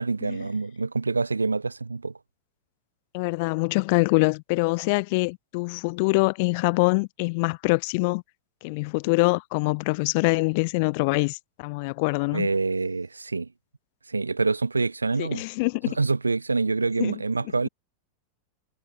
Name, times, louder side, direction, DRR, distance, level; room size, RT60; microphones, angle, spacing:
voice 1, 0.0-2.1 12.3-13.5 14.1-15.4 15.9-17.7, right 3 dB, 80° right, 1.9 m, -26 dB
voice 2, 3.1-8.2 8.6-12.5 15.2-16.0 17.0-17.1, left 29 dB, 45° left, 3.3 m, -24 dB
figure-of-eight pair, 90°, 0 cm